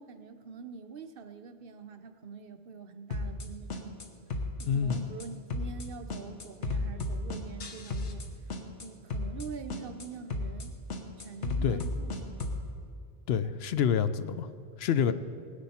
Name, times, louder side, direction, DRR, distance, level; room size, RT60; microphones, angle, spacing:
voice 1, 0.0-4.0 4.6-8.3 8.8-10.8 11.2-12.5 13.3-13.6 15.1-15.2, right 5 dB, 60° right, 9 dB, 0.8 m, -45 dB
sound 1, 3.1-3.5 3.7-4.1 4.3-4.7 4.9-5.3 5.5-5.9 6.1-8.3 8.5-8.9 9.1-9.5 9.7-10.1 10.3-10.7 10.9-12.6, left 2 dB, 85° left, 1.4 m, -33 dB
voice 2, 4.6-5.1 11.6-11.8 13.3-14.5 14.8-15.1, left 8 dB, 70° left, 12 dB, 0.8 m, -27 dB
19.0 x 9.8 x 4.2 m, 2.3 s
omnidirectional pair, 1.2 m